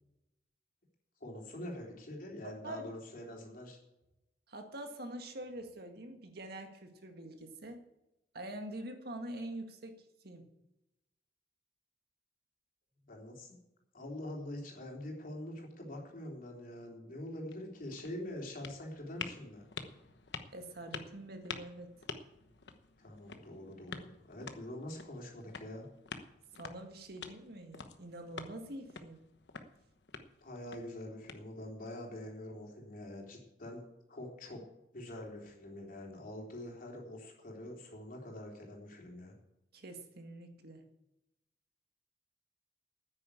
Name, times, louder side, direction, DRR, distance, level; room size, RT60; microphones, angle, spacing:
voice 1, 1.2-3.8 13.1-13.6 13.9-19.6 23.0-25.9 30.4-33.8 34.1-34.6 34.9-39.3, left 1 dB, 50° left, -1 dB, 3.6 m, -45 dB
voice 2, 2.4-2.9 4.5-7.8 8.3-10.4 20.5-21.9 26.5-29.2 39.7-40.8, right 1 dB, 60° right, 5 dB, 1.8 m, -45 dB
sound 1, 17.4-31.9, left 5 dB, 70° left, 1.1 m, -49 dB
9.8 x 9.5 x 8.4 m, 0.92 s
head